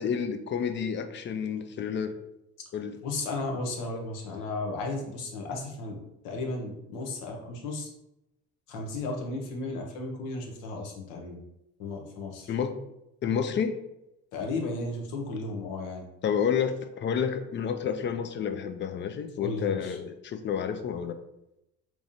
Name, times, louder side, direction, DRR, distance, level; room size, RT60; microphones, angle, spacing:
voice 1, 0.0-2.1 2.7-3.0 12.5-12.8 13.2-13.8 16.2-21.2, left 7 dB, 35° left, 8 dB, 0.5 m, -30 dB
voice 2, 3.0-6.0 6.2-7.9 8.7-11.4 11.8-12.5 14.3-16.0 19.4-20.0, left 2 dB, 70° left, 1 dB, 0.9 m, -34 dB
3.5 x 3.1 x 2.6 m, 0.86 s
hypercardioid pair, 70°, 33 cm